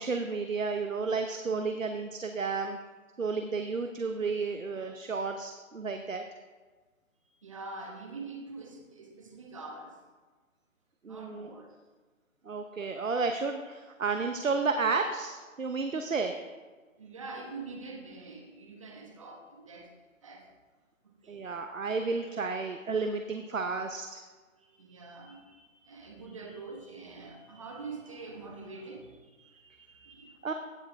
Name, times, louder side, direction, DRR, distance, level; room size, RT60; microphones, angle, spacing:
voice 1, 0.0-2.8 3.2-6.2 11.0-11.5 12.5-16.4 21.3-24.2 30.4-30.5, right 4 dB, 70° right, 6 dB, 0.9 m, -32 dB
voice 2, 7.4-10.0 11.1-11.7 17.0-19.9 20.2-20.5 21.0-21.5 24.6-30.4, right 3 dB, 25° right, 2 dB, 1.1 m, -45 dB
16.0 x 6.6 x 3.4 m, 1.3 s
figure-of-eight pair, 150°, 41 cm